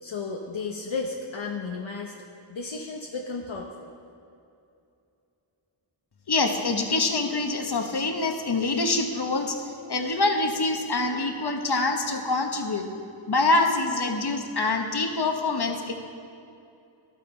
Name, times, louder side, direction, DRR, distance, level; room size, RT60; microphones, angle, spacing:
voice 1, 0.0-2.2 2.5-3.9, left 4 dB, 70° left, 0 dB, 0.8 m, -33 dB
voice 2, 6.3-12.9 13.3-15.9, left 3 dB, 50° left, 4 dB, 1.1 m, -25 dB
11.5 x 9.1 x 4.5 m, 2.6 s
wide cardioid pair, 45°, 49 cm